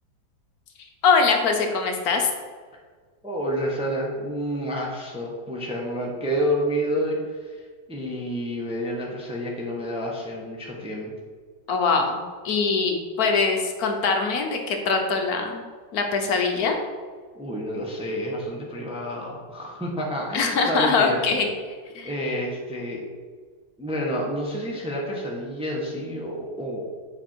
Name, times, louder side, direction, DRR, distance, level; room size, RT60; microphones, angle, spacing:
voice 1, 1.0-2.3 11.7-15.6 15.9-16.8 20.3-21.5 21.9-22.1, left 4 dB, 60° left, 3 dB, 1.2 m, -22 dB
voice 2, 3.2-7.6 7.9-11.1 17.3-21.2 22.0-23.0 23.8-26.9, equal, 5° right, -2 dB, 0.9 m, -29 dB
7.4 x 5.3 x 4.5 m, 1.5 s
omnidirectional pair, 2.0 m